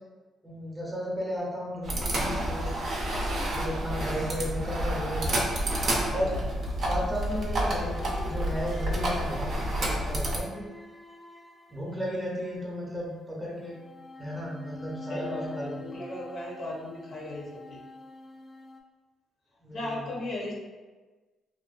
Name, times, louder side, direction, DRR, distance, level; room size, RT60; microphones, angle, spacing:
voice 1, 0.4-2.7 3.5-5.4 6.1-6.4 6.9-10.7 11.7-13.8 14.2-15.8 19.6-20.1, equal, 15° right, -4 dB, 0.7 m, -34 dB
sound 1, 1.8-10.4, right 1 dB, 60° right, 0.5 m, -29 dB
voice 2, 6.1-6.5 15.1-17.8 19.7-20.5, left 1 dB, 55° left, -3 dB, 0.7 m, -37 dB
sound 2, 7.9-12.6 13.5-18.8, left 2 dB, 5° left, 0.3 m, -45 dB
2.5 x 2.2 x 2.4 m, 1.3 s
cardioid pair, 90°, 0 cm